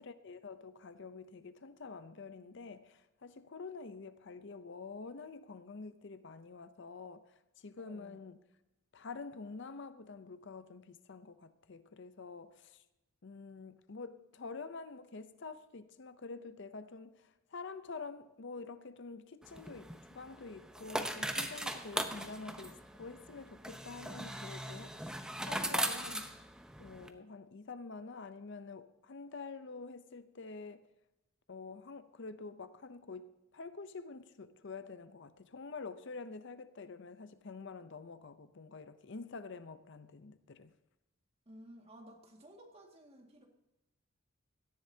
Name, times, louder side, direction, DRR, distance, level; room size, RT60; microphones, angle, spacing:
voice 1, 0.0-8.4 8.9-12.8 13.2-25.2 25.5-26.3 26.8-30.9 31.5-40.7, left 4 dB, 60° left, 0.6 m, -47 dB
voice 2, 7.8-8.2 41.5-43.5, equal, 30° right, 2.0 m, -55 dB
sound 1, 19.4-27.1, right 1 dB, 5° right, 0.8 m, -39 dB
17.5 x 13.5 x 2.8 m
head